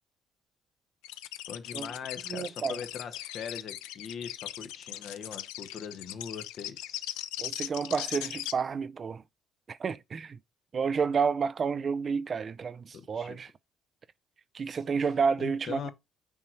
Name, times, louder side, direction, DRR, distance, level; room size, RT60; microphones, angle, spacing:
sound 1, 1.0-8.5, left 14 dB, 85° left, 0.4 m, -39 dB
voice 1, 1.5-7.1 12.9-13.4 15.4-15.9, left 7 dB, 60° left, 1.1 m, -41 dB
voice 2, 2.3-2.8 7.4-9.2 9.7-10.4 10.7-13.5 14.5-15.9, right 5 dB, 45° right, 0.5 m, -30 dB
7.1 x 4.4 x 4.4 m
hypercardioid pair, 60°, 0 cm